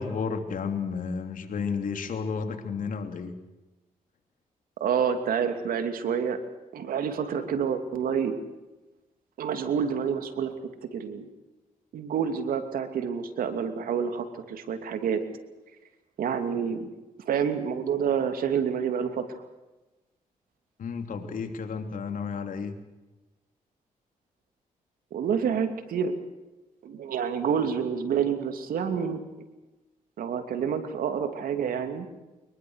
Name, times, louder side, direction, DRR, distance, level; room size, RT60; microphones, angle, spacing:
voice 1, 0.0-3.4 20.8-22.7, left 5 dB, 70° left, 6 dB, 3.2 m, -32 dB
voice 2, 4.8-6.4 6.7-8.4 9.4-10.5 10.8-11.3 11.9-15.2 16.2-16.9 17.3-19.4 25.1-26.1 26.8-29.2 30.2-32.1, right 7 dB, 80° right, 8 dB, 2.8 m, -28 dB
24.0 x 21.5 x 6.5 m, 1.1 s
cardioid pair, 70°, 15 cm